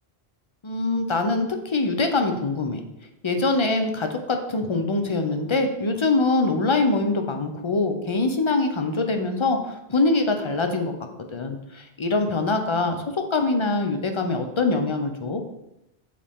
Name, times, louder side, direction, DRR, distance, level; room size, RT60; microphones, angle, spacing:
voice 1, 0.6-2.8 3.2-10.9 11.3-13.0 13.3-15.4, left 3 dB, 35° left, 5 dB, 0.6 m, -23 dB
7.5 x 4.2 x 3.6 m, 0.89 s
omnidirectional pair, 1.1 m